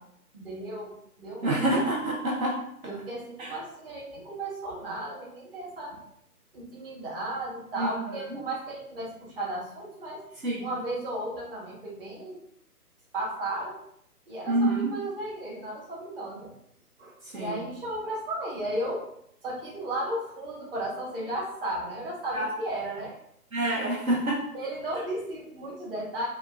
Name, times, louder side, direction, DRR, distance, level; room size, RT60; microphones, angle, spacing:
voice 1, 0.3-1.7 2.8-6.0 6.5-10.2 10.6-12.4 13.1-13.8 14.3-16.5 17.0-19.0 19.4-23.1 24.5-26.3, right 1 dB, 35° right, -4 dB, 1.4 m, -34 dB
voice 2, 1.4-2.6 3.4-3.5 7.8-7.9 8.3-8.4 10.4-10.7 14.5-14.9 17.2-17.6 22.3-22.5 23.5-24.4, right 1 dB, 60° right, -3 dB, 1.1 m, -27 dB
4.9 x 2.5 x 2.5 m, 0.72 s
figure-of-eight pair, 145°, 47 cm